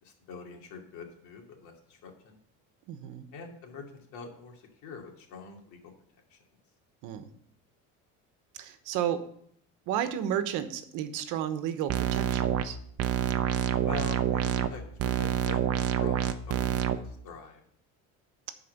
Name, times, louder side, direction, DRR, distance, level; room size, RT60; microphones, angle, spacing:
voice 1, 0.0-2.4 3.3-5.9 6.3-6.4 13.8-17.6, left 4 dB, 60° left, 2 dB, 2.6 m, -44 dB
voice 2, 2.9-3.3 7.0-7.2 8.6-9.2 9.9-12.8, right 10 dB, 70° right, 10 dB, 1.2 m, -32 dB
sound 1, 11.9-12.7 13.0-14.7 15.0-17.0, right 10 dB, 50° right, 0.8 m, -27 dB
11.5 x 4.8 x 6.6 m, 0.65 s
cardioid pair, 160°, 32 cm